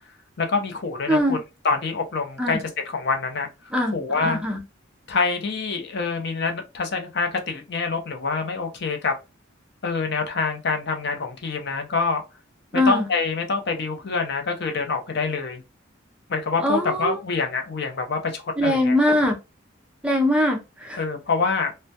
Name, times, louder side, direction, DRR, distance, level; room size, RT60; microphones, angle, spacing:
voice 1, 0.4-1.4 1.6-2.6 2.9-3.5 3.9-4.4 5.1-9.2 9.8-12.2 12.7-15.6 16.3-19.0 21.0-21.7, left 4 dB, 60° left, 0.5 m, -26 dB
voice 2, 1.1-1.4 2.4-2.6 3.7-4.6 12.7-13.1 16.6-17.2 18.6-19.4 20.0-21.0, left 1 dB, 5° right, 0.4 m, -22 dB
2.2 x 2.1 x 2.6 m
head